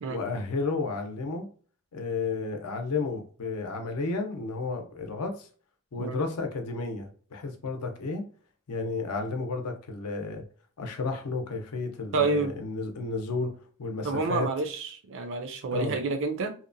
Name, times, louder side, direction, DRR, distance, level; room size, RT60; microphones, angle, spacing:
voice 1, 0.1-1.5 1.9-5.5 5.9-8.2 8.7-10.4 10.8-14.5 15.7-16.0, left 3 dB, 80° left, 0.6 m, -32 dB
voice 2, 12.1-12.5 14.0-16.5, right 3 dB, 60° right, 0.4 m, -29 dB
2.8 x 2.1 x 2.5 m
head